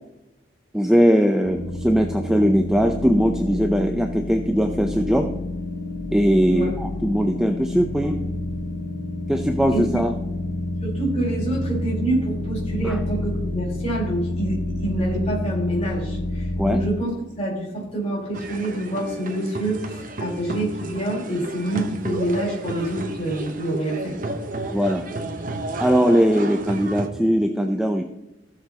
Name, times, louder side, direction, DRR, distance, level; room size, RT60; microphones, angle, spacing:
voice 1, 0.7-5.3 6.1-8.2 9.3-10.1 12.8-13.0 16.6-16.8 24.7-25.0 25.8-28.0, equal, 5° right, 4 dB, 0.5 m, -20 dB
sound 1, 1.4-16.9, left 1 dB, 70° left, 1.0 m, -29 dB
voice 2, 10.8-24.1, right 1 dB, 35° left, -4 dB, 4.1 m, -27 dB
sound 2, 18.3-27.1, right 2 dB, 45° right, 1.0 m, -32 dB
16.0 x 6.8 x 2.9 m, 0.93 s
head